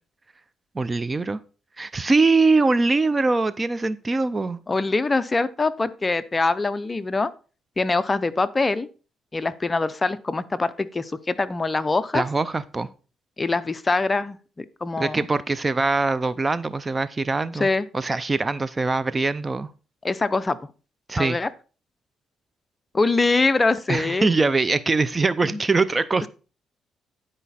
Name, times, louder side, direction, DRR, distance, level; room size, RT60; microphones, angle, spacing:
voice 1, 0.7-1.4 1.8-4.6 12.1-12.9 15.0-17.7 17.9-19.7 21.1-21.4 23.9-26.3, right 3 dB, 25° right, 16 dB, 0.5 m, -22 dB
voice 2, 4.7-7.3 7.8-8.9 9.3-12.2 13.4-15.3 17.5-17.9 20.0-20.6 21.2-21.5 22.9-24.3 25.4-25.6, left 3 dB, 25° left, 14 dB, 0.6 m, -23 dB
10.5 x 4.9 x 4.2 m, 0.35 s
cardioid pair, 90°, 0 cm